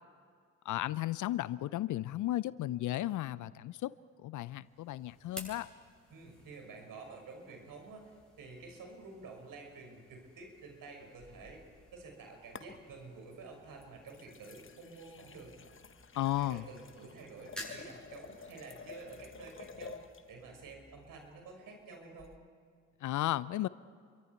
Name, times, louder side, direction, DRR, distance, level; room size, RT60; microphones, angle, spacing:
voice 1, 0.6-3.9 4.2-5.7 16.2-16.6 23.0-23.7, left 14 dB, 55° left, 19 dB, 0.6 m, -34 dB
sound 1, 4.5-21.4, left 1 dB, ahead, 8.0 m, -55 dB
voice 2, 6.1-11.6 11.9-15.5 16.4-20.0 20.3-22.4, right 3 dB, 60° right, 2 dB, 5.8 m, -50 dB
sound 2, 11.2-12.1 12.5-13.2 13.8-20.3 22.2-22.4, left 6 dB, 30° left, 1.4 m, -52 dB
29.0 x 23.5 x 4.6 m, 2.1 s
hypercardioid pair, 45°, 38 cm